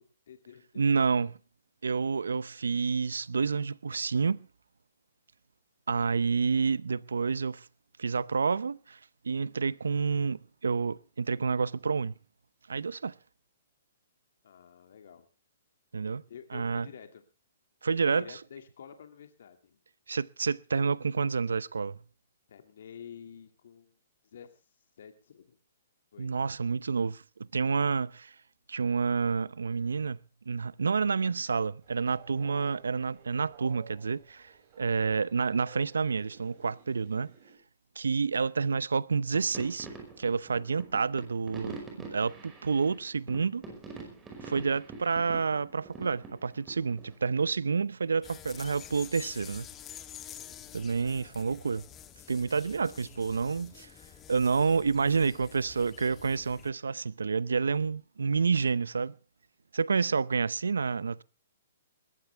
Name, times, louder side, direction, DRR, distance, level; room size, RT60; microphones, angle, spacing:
voice 1, 0.0-1.3 14.4-15.3 16.3-17.2 18.1-19.8 22.5-23.9 24.3-24.7 25.0-25.6 26.1-26.3 50.4-50.8, left 8 dB, 65° left, 2.3 m, -50 dB
voice 2, 0.8-1.3 1.8-4.5 5.9-7.7 8.0-9.0 9.2-12.1 12.7-13.1 15.9-16.2 16.5-16.9 17.8-18.4 20.1-22.0 26.2-27.2 27.5-28.3 28.7-30.2 30.5-34.5 34.8-37.3 38.0-39.9 40.2-43.6 44.4-49.7 50.7-51.8 52.3-53.9 54.3-59.1 59.7-61.2, right 5 dB, 90° right, 0.6 m, -29 dB
Train, 31.8-37.6, right 7 dB, 45° right, 6.3 m, -55 dB
sound 1, 39.3-47.2, right 3 dB, 15° right, 5.3 m, -45 dB
sound 2, 48.2-56.7, left 10 dB, 20° left, 1.3 m, -48 dB
20.5 x 15.0 x 3.4 m
hypercardioid pair, 140°, 0 cm